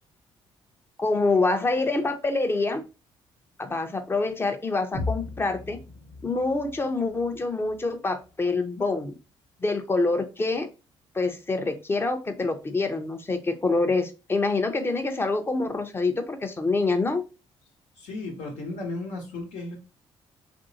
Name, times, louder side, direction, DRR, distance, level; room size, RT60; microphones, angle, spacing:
voice 1, 1.0-2.8 3.6-5.8 6.2-9.1 9.6-10.7 11.1-17.3, left 3 dB, 20° left, 8 dB, 0.6 m, -26 dB
sound 1, 4.9-8.9, left 3 dB, 45° left, 1.1 m, -38 dB
voice 2, 18.0-19.8, left 2 dB, 80° left, -1 dB, 1.0 m, -34 dB
3.0 x 2.6 x 2.8 m, 0.31 s
cardioid pair, 85°, 11 cm